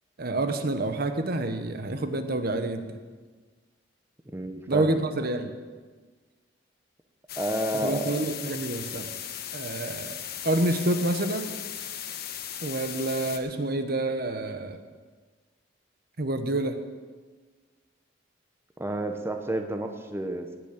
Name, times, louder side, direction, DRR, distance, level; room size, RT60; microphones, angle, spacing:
voice 1, 0.2-3.0 4.7-5.5 7.8-9.1 9.5-10.2 10.4-11.5 12.6-14.8 16.2-16.8, right 2 dB, 55° right, 8 dB, 1.1 m, -28 dB
voice 2, 4.3-5.1 7.4-8.0 18.8-20.6, right 1 dB, 15° right, 5 dB, 0.9 m, -30 dB
sound 1, 7.3-13.4, left 9 dB, 60° left, 1.1 m, -37 dB
17.5 x 6.1 x 8.5 m, 1.4 s
head